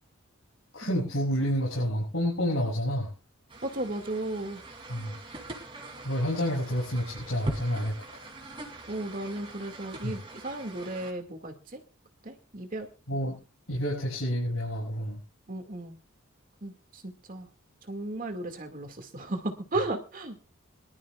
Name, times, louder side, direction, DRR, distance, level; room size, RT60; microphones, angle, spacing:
voice 1, 0.7-3.1 4.9-5.2 6.0-8.2 10.0-10.1 13.1-13.4 13.7-15.2, equal, 75° left, -5 dB, 6.6 m, -29 dB
sound 1, 3.5-11.1, right 1 dB, 25° right, 3.0 m, -42 dB
voice 2, 3.6-4.6 8.9-11.8 12.2-12.9 15.5-16.0 16.6-17.5 17.9-20.4, right 2 dB, 40° right, 5 dB, 2.2 m, -35 dB
23.5 x 12.5 x 2.4 m, 0.31 s
head